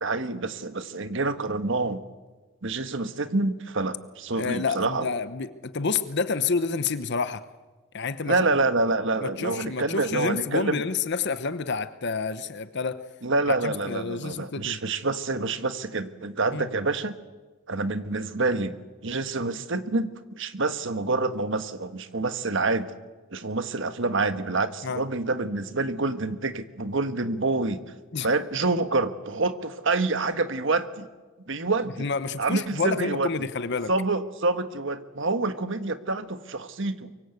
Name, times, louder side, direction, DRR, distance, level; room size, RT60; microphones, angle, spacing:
voice 1, 0.0-2.0 2.6-5.0 8.2-10.8 13.2-17.1 17.7-18.8 19.0-22.9 23.3-27.8 28.2-31.1 31.5-32.1 32.4-33.3 33.9-37.1, right 3 dB, 65° right, 10 dB, 1.5 m, -27 dB
voice 2, 4.3-7.4 7.9-8.4 9.2-13.0 13.5-14.8 16.5-16.6 24.8-25.0 28.1-28.3 32.0-33.9, left 4 dB, 55° left, 12 dB, 0.9 m, -29 dB
24.0 x 24.0 x 8.1 m, 1.2 s
head